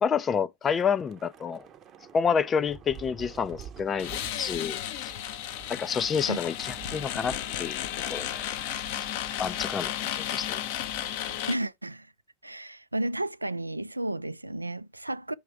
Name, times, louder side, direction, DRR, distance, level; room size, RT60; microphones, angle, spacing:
voice 1, 0.0-1.7 2.1-5.1 5.7-7.8 8.1-8.4 9.4-10.6, left 6 dB, 20° left, 0.4 m, -29 dB
Thunder / Rain, 0.6-9.2 9.5-9.7 10.0-10.3, right 8 dB, 30° right, 0.8 m, -49 dB
sound 1, 4.0-11.6, left 11 dB, 50° left, 0.8 m, -33 dB
voice 2, 11.5-12.1 12.4-15.3, right 1 dB, 85° right, 0.3 m, -32 dB
7.0 x 3.2 x 4.7 m
figure-of-eight pair, 90°, 0 cm